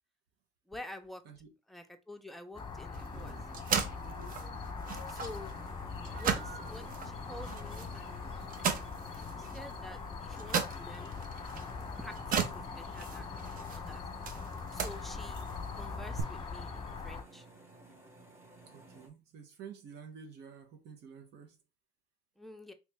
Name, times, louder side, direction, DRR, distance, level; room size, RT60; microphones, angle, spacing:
voice 1, 0.7-1.2 1.7-3.4 5.1-5.5 6.2-8.2 9.2-11.1 12.0-13.4 13.7-14.0 14.7-15.4 15.8-17.5 22.4-22.7, left 1 dB, ahead, 0.6 m, -48 dB
sound 1, 2.5-17.2, left 5 dB, 30° left, 0.9 m, -42 dB
sound 2, 2.9-16.2, right 6 dB, 55° right, 0.7 m, -38 dB
voice 2, 3.1-3.5 18.7-21.6, right 6 dB, 80° right, 0.9 m, -50 dB
sound 3, 5.4-19.1, right 2 dB, 15° right, 1.0 m, -56 dB
3.1 x 3.0 x 3.4 m
cardioid pair, 110°, 17 cm